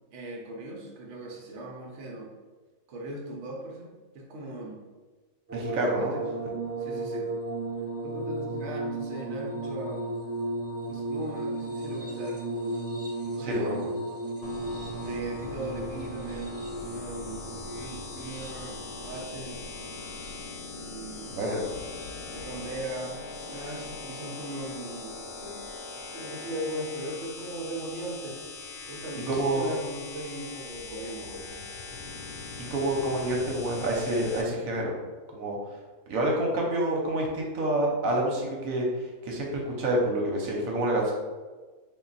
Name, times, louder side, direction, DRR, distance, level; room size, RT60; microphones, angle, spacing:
voice 1, 0.1-2.3 2.9-4.8 5.5-6.2 6.8-7.3 8.0-10.1 10.9-13.0 13.2-13.8 15.0-16.5 16.9-19.6 20.7-21.3 22.3-25.7 26.1-28.4 28.9-31.6, right 1 dB, 60° right, -1 dB, 0.9 m, -39 dB
sound 1, 5.5-20.7 21.6-22.3 23.7-23.9, right 2 dB, 20° right, 0.4 m, -35 dB
voice 2, 5.5-6.1 13.4-13.7 21.3-21.6 29.1-29.7 32.6-34.9 35.3-35.6 36.1-41.1, right 1 dB, 80° right, -1 dB, 1.1 m, -28 dB
sound 2, 14.4-34.4, left 4 dB, 70° left, 0.9 m, -41 dB
3.7 x 2.2 x 3.9 m, 1.3 s
omnidirectional pair, 1.4 m